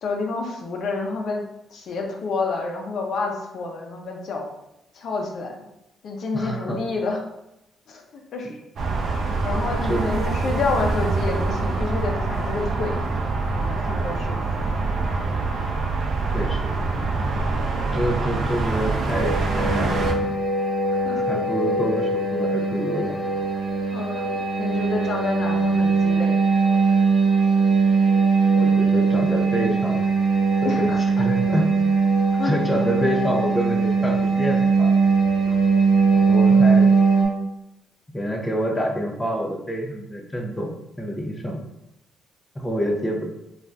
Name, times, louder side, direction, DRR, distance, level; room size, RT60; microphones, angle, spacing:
voice 1, 0.0-1.4 1.7-4.5 4.9-5.7 6.0-7.2 7.9-8.0 8.3-8.5 9.4-13.0 13.5-14.7 21.0-21.2 23.9-24.3 24.6-26.4 30.6-31.0 32.3-32.5 35.5-35.6, left 3 dB, 65° left, 1 dB, 0.5 m, -28 dB
voice 2, 6.3-6.8 8.4-8.5 9.9-10.0 16.3-16.8 17.9-20.3 21.3-23.2 28.6-30.0 30.6-31.7 32.4-34.9 36.1-36.9 38.1-41.6 42.5-43.3, equal, 15° left, 1 dB, 0.6 m, -27 dB
sound 1, 8.8-20.1, right 3 dB, 60° right, 0.5 m, -25 dB
sound 2, 19.1-37.3, right 4 dB, 45° right, 1.0 m, -20 dB
2.5 x 2.4 x 3.2 m, 0.86 s
cardioid pair, 90°, 0 cm